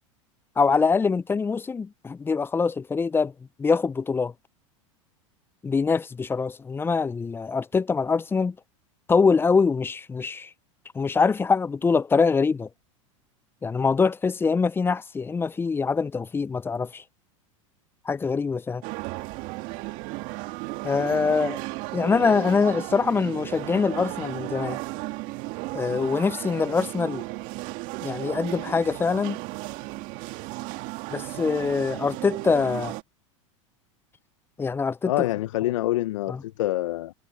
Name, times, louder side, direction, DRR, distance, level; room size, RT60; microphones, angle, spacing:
voice 1, 0.6-3.3 3.6-4.3 5.6-8.6 9.1-10.5 10.9-12.7 13.6-17.0 18.1-18.8 20.8-21.6 21.9-24.8 25.7-27.2 28.0-29.4 31.1-32.9 34.6-35.1 36.3-36.4, left 5 dB, 15° left, 0.5 m, -24 dB
sound 1, 18.8-33.0, right 23 dB, 55° right, 1.8 m, -34 dB
voice 2, 35.1-37.1, left 15 dB, 75° left, 1.0 m, -26 dB
hypercardioid pair, 105°, 17 cm